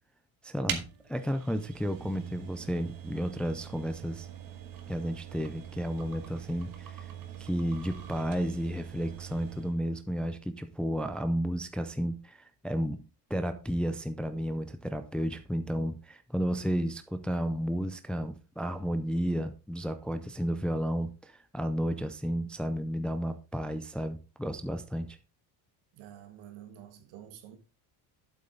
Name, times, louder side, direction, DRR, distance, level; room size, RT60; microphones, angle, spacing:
voice 1, 0.4-0.8 1.1-4.3 4.9-7.1 7.4-13.0 13.3-25.2, equal, ahead, 0.4 m, -32 dB
sound 1, 0.7-9.8, right 9 dB, 45° right, 1.6 m, -43 dB
voice 2, 25.9-27.6, right 10 dB, 80° right, 1.8 m, -49 dB
8.6 x 8.0 x 3.8 m
cardioid pair, 150°, 45 cm